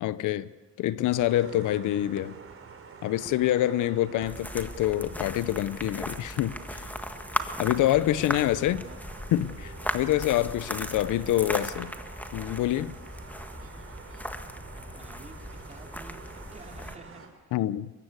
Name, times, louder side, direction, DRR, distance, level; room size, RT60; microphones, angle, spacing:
voice 1, 0.0-0.5 0.8-2.4 3.0-6.9 7.6-8.8 9.3-11.9 12.3-13.0 17.5-17.9, left 13 dB, 80° left, 0.8 m, -26 dB
sound 1, 1.2-17.3, right 5 dB, 45° right, 4.7 m, -48 dB
sound 2, 2.2-2.6 3.2-3.4 4.2-4.5 5.2-5.6 6.1-6.5, left 6 dB, 40° left, 1.4 m, -49 dB
sound 3, 4.2-17.0, left 1 dB, 5° left, 1.7 m, -37 dB
voice 2, 7.4-9.0 14.8-17.6, right 3 dB, 20° right, 4.3 m, -50 dB
22.5 x 22.0 x 8.2 m
cardioid pair, 90°, 30 cm